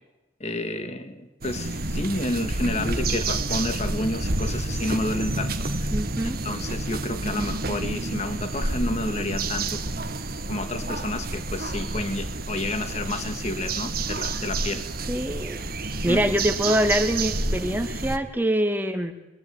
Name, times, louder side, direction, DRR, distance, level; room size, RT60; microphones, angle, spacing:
voice 1, 0.4-5.9 6.2-10.0 10.5-14.9 16.1-16.2, left 2 dB, 35° left, 6 dB, 2.3 m, -30 dB
sound 1, 1.4-18.2, right 2 dB, 55° right, 1.8 m, -29 dB
voice 2, 5.9-6.4 15.1-15.6 16.0-19.1, equal, 10° right, 6 dB, 2.3 m, -24 dB
26.0 x 23.5 x 9.7 m, 1.0 s
head